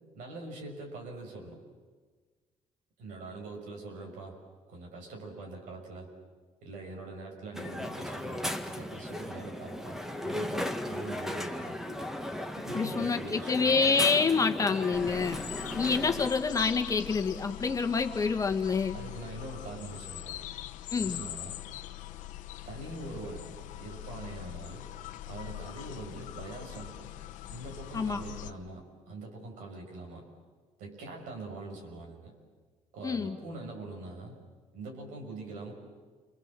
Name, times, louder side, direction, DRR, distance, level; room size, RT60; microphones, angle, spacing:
voice 1, 0.1-1.6 3.0-4.4 4.7-6.1 6.6-10.0 10.2-11.8 12.6-13.9 18.9-20.4 20.9-21.6 22.6-23.5 23.8-24.9 25.3-27.1 27.5-30.3 30.8-32.3 32.9-34.4 34.7-35.7, right 2 dB, 85° right, 1 dB, 6.7 m, -43 dB
Crowd, 7.5-16.3, left 1 dB, 5° right, 1.7 m, -36 dB
voice 2, 12.7-15.4 15.7-19.0 20.9-21.2 27.9-28.2 33.0-33.4, left 5 dB, 25° left, 6 dB, 1.7 m, -27 dB
sound 1, 14.9-28.5, left 14 dB, 85° left, 1.0 m, -42 dB
29.0 x 24.0 x 7.7 m, 1.4 s
cardioid pair, 120°, 13 cm